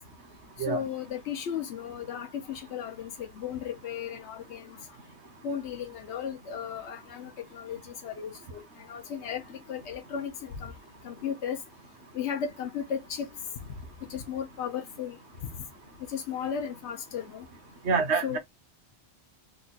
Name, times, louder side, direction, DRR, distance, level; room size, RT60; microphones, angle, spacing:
voice 1, 0.7-4.6 5.4-8.6 8.9-9.4 9.7-10.7 11.0-11.6 12.1-13.3 14.1-15.2 16.1-17.4 18.2-18.4, left 8 dB, 85° left, 1.0 m, -35 dB
voice 2, 17.9-18.4, right 5 dB, 90° right, 1.1 m, -26 dB
3.6 x 2.3 x 4.0 m
omnidirectional pair, 1.1 m